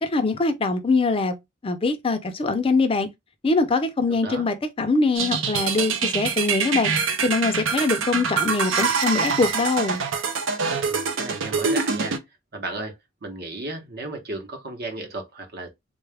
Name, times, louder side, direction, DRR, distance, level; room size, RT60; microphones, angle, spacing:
voice 1, 0.0-1.4 1.6-3.1 3.4-6.9 7.2-10.0, left 3 dB, 30° left, 0.5 m, -23 dB
voice 2, 4.1-4.5 10.9-12.2 12.5-12.9 13.2-15.7, right 2 dB, 55° right, 0.9 m, -34 dB
sound 1, 5.2-12.2, right 5 dB, 70° right, 0.6 m, -25 dB
3.7 x 2.3 x 3.3 m
head